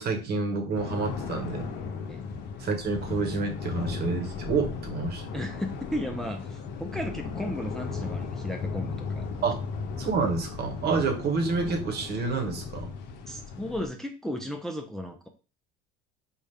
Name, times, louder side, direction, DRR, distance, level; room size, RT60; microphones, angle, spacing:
voice 1, 0.0-1.7 2.6-5.3 9.4-9.6 10.0-12.9, right 4 dB, 50° right, 4 dB, 1.1 m, -28 dB
sound 1, 0.7-13.9, left 5 dB, 60° left, 0.7 m, -36 dB
voice 2, 5.3-9.3 13.3-15.3, equal, ahead, 3 dB, 0.5 m, -35 dB
4.1 x 2.3 x 3.4 m, 0.35 s
supercardioid pair, 85°, 21 cm